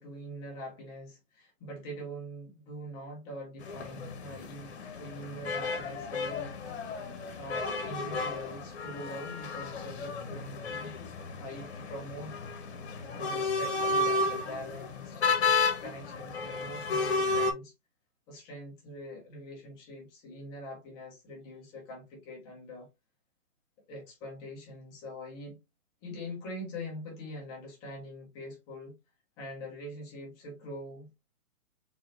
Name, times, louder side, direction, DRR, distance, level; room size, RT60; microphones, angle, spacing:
voice 1, 0.0-6.6 7.4-10.9 11.4-12.3 13.2-15.2 15.8-17.7 18.3-22.9 23.9-25.6 26.0-28.9 29.4-31.1, equal, 10° left, 0.8 m, -43 dB
sound 1, 3.6-17.5, left 3 dB, 45° left, 1.1 m, -32 dB
3.8 x 3.6 x 2.5 m
hypercardioid pair, 155°, 46 cm